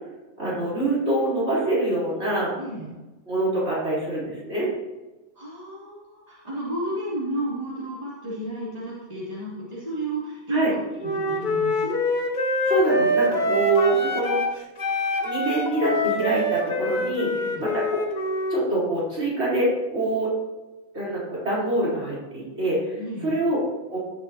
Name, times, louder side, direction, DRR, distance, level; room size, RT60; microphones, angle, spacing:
voice 1, 0.4-2.5 3.3-4.7 10.5-10.7 12.7-14.4 15.2-17.3 17.6-18.0 18.5-20.3 20.9-23.6 23.9-24.0, right 2 dB, 50° right, -8 dB, 4.4 m, -25 dB
voice 2, 2.6-2.9 5.3-11.9 17.3-17.6 23.0-23.3, right 1 dB, 30° right, -9 dB, 3.2 m, -32 dB
Wind instrument woodwind instrument, 11.0-14.5 14.8-18.7, left 1 dB, 40° left, 1.1 m, -25 dB
17.0 x 7.8 x 2.9 m, 1.1 s
omnidirectional pair, 1.4 m